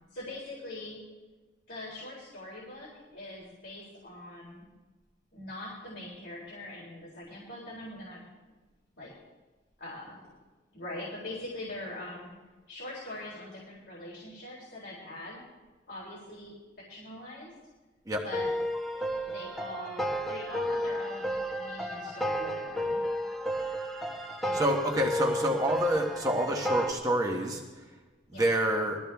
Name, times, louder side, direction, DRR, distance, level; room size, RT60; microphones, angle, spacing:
voice 1, 0.1-1.0 1.7-4.7 5.3-8.2 9.0-9.1 9.8-10.3 10.7-12.3 12.7-15.4 15.9-16.5 16.9-17.5 18.2-18.5 19.3-23.0 24.4-24.6 25.2-25.4 25.7-25.8 28.3-28.5, left 1 dB, 70° left, -6 dB, 4.0 m, -42 dB
sound 1, 18.3-26.9, equal, ahead, 1.6 m, -32 dB
voice 2, 24.5-27.6 28.3-29.0, right 1 dB, 20° right, 0 dB, 1.3 m, -27 dB
20.5 x 14.0 x 3.5 m, 1.2 s
head